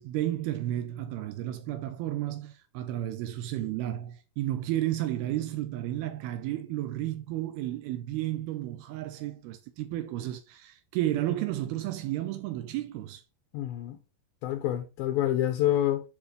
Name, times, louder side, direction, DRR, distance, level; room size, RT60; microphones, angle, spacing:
voice 1, 0.0-13.2, right 14 dB, 85° right, 2.2 m, -32 dB
voice 2, 13.5-14.0 14.4-16.0, left 12 dB, 85° left, 2.1 m, -27 dB
9.2 x 5.4 x 3.4 m
omnidirectional pair, 5.4 m